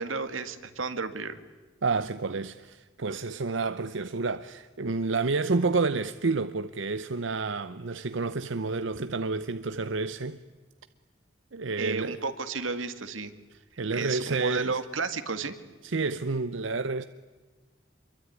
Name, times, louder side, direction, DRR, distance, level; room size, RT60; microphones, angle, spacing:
voice 1, 0.0-1.4 11.8-13.3 13.9-15.5, right 4 dB, 90° right, 2.0 m, -32 dB
voice 2, 1.8-10.4 11.5-12.2 13.8-14.8 15.8-17.0, right 3 dB, 70° right, 0.8 m, -29 dB
27.0 x 23.0 x 9.6 m
head